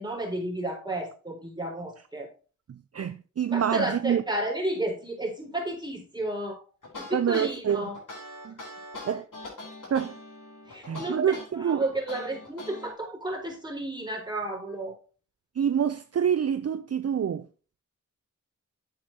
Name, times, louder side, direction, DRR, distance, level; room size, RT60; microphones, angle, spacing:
voice 1, 0.0-2.3 3.5-6.6 7.0-8.0 8.9-9.0 10.7-14.9, right 1 dB, 15° right, 4.0 m, -32 dB
voice 2, 2.7-4.2 7.1-7.9 8.4-8.5 9.0-9.2 9.9-10.1 10.9-11.8 15.6-17.5, right 8 dB, 50° right, 0.5 m, -27 dB
sound 1, 6.8-12.9, left 2 dB, 80° left, 3.8 m, -42 dB
8.7 x 7.7 x 2.8 m
wide cardioid pair, 55°, 31 cm